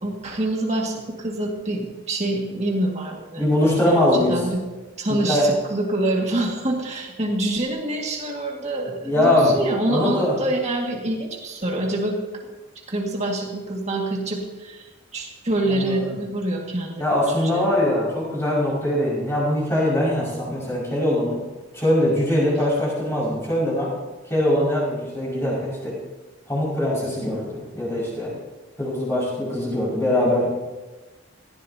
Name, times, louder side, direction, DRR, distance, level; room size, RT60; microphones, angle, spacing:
voice 1, 0.0-3.4 3.9-4.6 5.0-12.2 12.9-17.7, right 1 dB, 35° right, -1 dB, 2.0 m, -26 dB
voice 2, 3.4-4.4 5.2-5.5 9.0-9.5 9.9-10.3 15.8-16.0 17.0-21.4 21.7-23.9 24.3-25.9 26.5-28.3 28.8-30.5, left 1 dB, 10° left, -7 dB, 5.6 m, -22 dB
18.0 x 15.0 x 2.8 m, 1.2 s
head